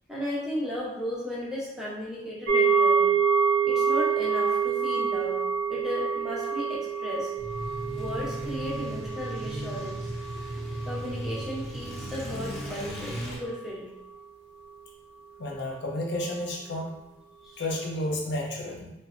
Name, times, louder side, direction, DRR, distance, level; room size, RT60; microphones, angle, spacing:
voice 1, 0.1-3.1 3.6-5.4 5.7-7.3 7.9-10.1 10.9-13.9 17.4-17.7, equal, 5° right, -7 dB, 0.5 m, -35 dB
sound 1, 2.5-11.6 11.8-12.1 12.6-12.7, right 5 dB, 80° right, 0.4 m, -27 dB
sound 2, 7.4-13.4, equal, 35° left, 1.0 m, -36 dB
voice 2, 15.4-16.9 17.6-18.9, left 1 dB, 80° left, -1 dB, 0.5 m, -31 dB
3.2 x 2.1 x 2.4 m, 0.91 s
head